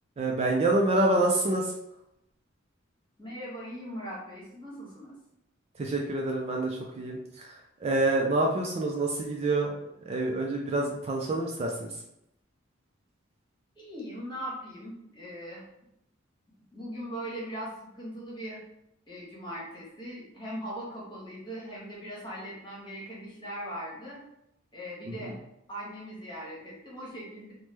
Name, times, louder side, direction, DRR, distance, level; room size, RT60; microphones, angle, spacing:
voice 1, 0.2-1.7 5.8-7.5 7.8-9.7 10.1-11.9, right 2 dB, 30° right, -1 dB, 0.3 m, -27 dB
voice 2, 3.2-5.2 13.8-15.6 16.7-18.6 19.1-24.2 24.7-25.3 25.7-27.5, equal, 25° left, -6 dB, 1.1 m, -40 dB
3.1 x 2.1 x 3.2 m, 0.81 s
head